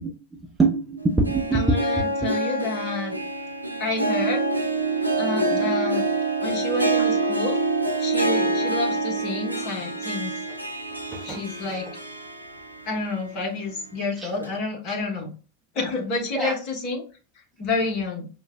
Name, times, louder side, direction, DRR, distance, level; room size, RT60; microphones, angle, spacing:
voice 1, 0.0-2.3 5.5-5.8 9.6-9.7 11.1-11.4 14.2-14.3 16.3-16.6, right 3 dB, 10° right, -1 dB, 0.6 m, -25 dB
Harp, 1.0-13.1 13.5-13.6 14.4-14.5, right 2 dB, 90° right, 0.4 m, -26 dB
voice 2, 1.5-3.2 3.8-4.4 5.2-6.0 6.4-7.6 8.0-10.3 11.2-11.9 12.8-15.3 15.7-17.0 17.6-18.3, left 3 dB, 40° left, 0 dB, 1.3 m, -29 dB
5.3 x 2.3 x 2.3 m, 0.36 s
figure-of-eight pair, 90°, 0 cm